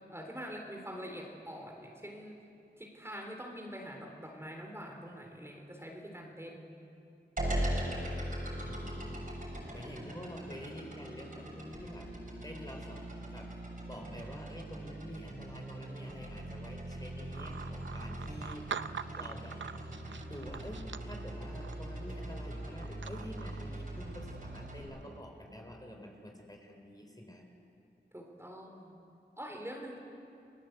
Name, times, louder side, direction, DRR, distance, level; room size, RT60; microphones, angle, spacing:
voice 1, 0.1-2.4 2.8-6.9 7.6-8.0 9.9-10.3 28.1-28.9 29.4-30.0, equal, 15° right, 1 dB, 3.7 m, -45 dB
sound 1, 7.4-24.8, right 1 dB, 50° right, 7.0 m, -40 dB
voice 2, 8.6-12.1 12.4-13.0 13.3-13.5 13.9-19.6 20.2-27.4, equal, 20° left, 2 dB, 4.1 m, -48 dB
sound 2, 17.3-25.2, right 6 dB, 85° right, 0.6 m, -46 dB
30.0 x 19.5 x 8.0 m, 2.6 s
wide cardioid pair, 80°, 19 cm